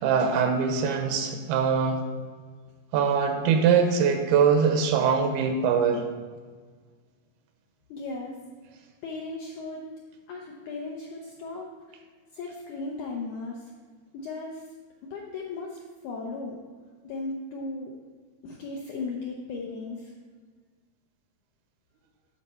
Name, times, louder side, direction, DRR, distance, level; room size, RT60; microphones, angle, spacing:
voice 1, 0.0-2.0 2.9-6.1, right 6 dB, 85° right, 6 dB, 2.7 m, -23 dB
voice 2, 7.9-8.4 9.0-9.8 10.3-12.0 12.3-13.7 14.1-14.6 15.0-15.8 16.0-16.6 17.0-17.9 18.4-20.1, left 3 dB, 80° left, -1 dB, 1.7 m, -36 dB
11.0 x 4.2 x 5.5 m, 1.5 s
omnidirectional pair, 4.5 m